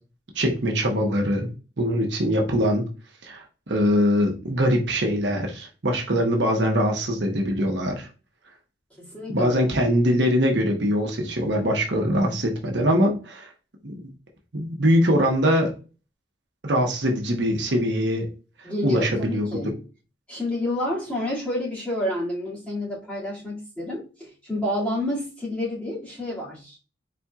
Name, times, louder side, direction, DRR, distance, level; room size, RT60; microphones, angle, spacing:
voice 1, 0.3-2.9 3.2-8.1 9.3-13.5 13.8-14.1 14.5-15.7 16.6-18.3 18.8-19.5, equal, 70° right, 2 dB, 1.0 m, -22 dB
voice 2, 9.0-9.6 18.6-19.8 20.3-26.8, left 1 dB, 5° left, -8 dB, 2.2 m, -29 dB
4.3 x 4.2 x 2.4 m, 0.34 s
head